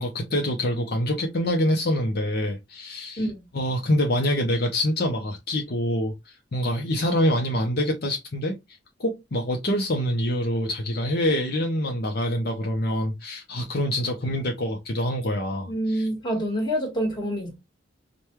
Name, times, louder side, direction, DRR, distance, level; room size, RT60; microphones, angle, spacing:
voice 1, 0.0-3.2 3.5-8.6 9.0-16.1, left 1 dB, 55° left, 0.7 m, -25 dB
voice 2, 15.6-17.6, equal, 25° left, 1.5 m, -27 dB
5.1 x 2.2 x 3.0 m
head